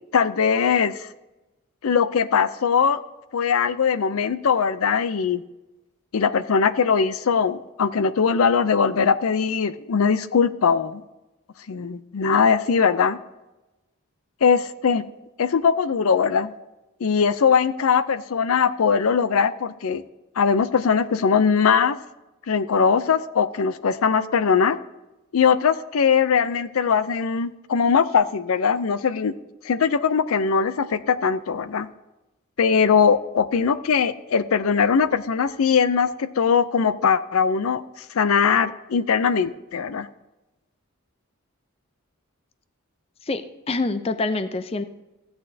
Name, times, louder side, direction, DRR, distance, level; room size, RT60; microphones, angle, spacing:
voice 1, 0.1-1.1 1.8-3.0 3.3-5.4 6.1-11.0 11.7-13.2 14.4-15.0 15.4-16.5 17.0-20.0 20.4-22.0 22.5-24.8 25.3-29.3 29.6-31.9 32.6-37.8 38.1-40.1, left 6 dB, 80° left, 14 dB, 0.5 m, -20 dB
voice 2, 43.2-44.8, left 3 dB, 25° left, 11 dB, 0.4 m, -26 dB
15.0 x 8.8 x 2.7 m, 1.0 s
head